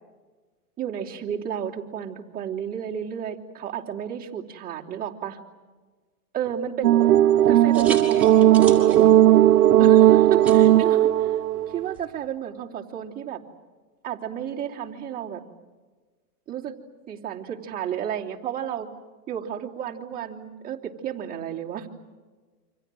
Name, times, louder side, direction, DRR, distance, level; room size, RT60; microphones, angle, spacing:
voice 1, 0.8-5.4 6.3-6.9 7.5-9.1 9.8-13.4 14.0-15.4 16.5-16.7 17.1-18.9 19.3-21.9, right 9 dB, 20° right, -3 dB, 3.1 m, -32 dB
sound 1, 6.8-11.9, right 12 dB, 85° right, 0.9 m, -16 dB
sound 2, 7.3-12.0, right 4 dB, 5° right, 6.2 m, -39 dB
29.0 x 27.0 x 7.7 m, 1.4 s
supercardioid pair, 150°, 46 cm